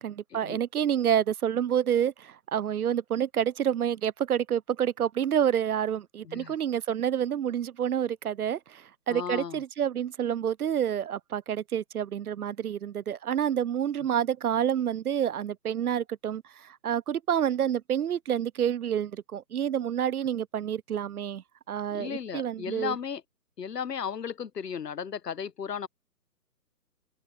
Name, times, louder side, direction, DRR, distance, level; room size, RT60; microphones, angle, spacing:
voice 1, 0.0-22.9, right 9 dB, 65° right, 0.5 m, -28 dB
voice 2, 6.2-6.6 9.1-9.6 21.9-23.2 23.6-25.9, left 7 dB, 70° left, 1.0 m, -35 dB
open air
figure-of-eight pair, 150°, 49 cm